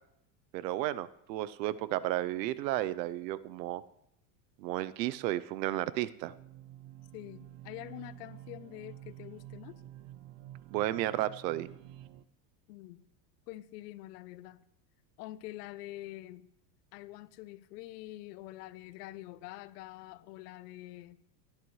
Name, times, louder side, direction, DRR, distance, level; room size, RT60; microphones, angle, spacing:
voice 1, 0.5-3.8 4.6-6.3 10.7-11.7, right 14 dB, 85° right, 0.8 m, -33 dB
sound 1, 6.2-12.2, right 13 dB, 55° right, 0.6 m, -50 dB
voice 2, 7.1-9.8 12.7-13.0 13.5-14.7 15.2-16.5 16.9-21.2, left 16 dB, 70° left, 0.8 m, -46 dB
17.0 x 11.0 x 3.2 m
supercardioid pair, 150°, 49 cm